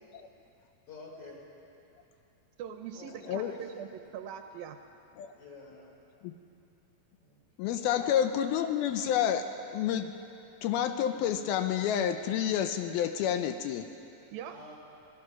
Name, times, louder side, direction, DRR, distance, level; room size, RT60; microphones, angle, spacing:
voice 1, 0.9-1.4 2.9-3.7 5.4-6.0 7.2-7.4 7.9-8.1 14.5-14.8, left 2 dB, 40° left, -1 dB, 4.3 m, -48 dB
voice 2, 2.6-4.8 14.3-14.6, right 8 dB, 80° right, 6 dB, 2.4 m, -42 dB
voice 3, 7.6-9.4 9.7-10.1 10.6-13.9, left 9 dB, 80° left, 8 dB, 2.6 m, -29 dB
26.5 x 18.0 x 6.0 m, 2.8 s
omnidirectional pair, 4.5 m